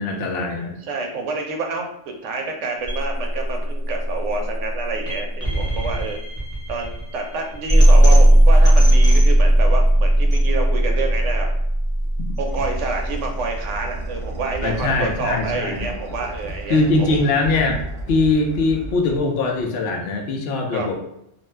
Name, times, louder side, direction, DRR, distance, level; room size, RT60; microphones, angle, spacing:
voice 1, 0.0-0.7 14.6-15.9 16.7-17.8 18.1-20.9, left 3 dB, 65° left, 2 dB, 0.7 m, -21 dB
voice 2, 0.8-6.2 6.7-11.5 12.4-17.2 20.7-20.9, right 3 dB, 75° right, 3 dB, 0.9 m, -28 dB
sound 1, 2.8-14.9, right 1 dB, 15° left, 0.6 m, -17 dB
sound 2, 11.9-19.8, right 1 dB, 35° right, 0.6 m, -35 dB
2.5 x 2.2 x 3.2 m, 0.77 s
omnidirectional pair, 1.3 m